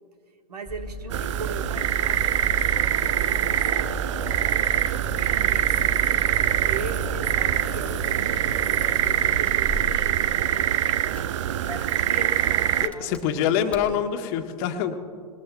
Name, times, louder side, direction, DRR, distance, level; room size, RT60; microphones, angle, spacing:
voice 1, 0.5-4.0 5.2-6.1 6.7-8.9 9.3-10.8 12.0-13.5, right 4 dB, 80° right, 6 dB, 1.4 m, -39 dB
Engine starting, 0.7-14.0, right 1 dB, 5° left, 0.4 m, -35 dB
sound 1, 1.1-12.9, right 11 dB, 50° right, 0.5 m, -24 dB
voice 2, 12.8-15.0, left 9 dB, 35° left, 6 dB, 1.2 m, -25 dB
20.5 x 19.5 x 2.3 m, 2.3 s
hypercardioid pair, 115°, 20 cm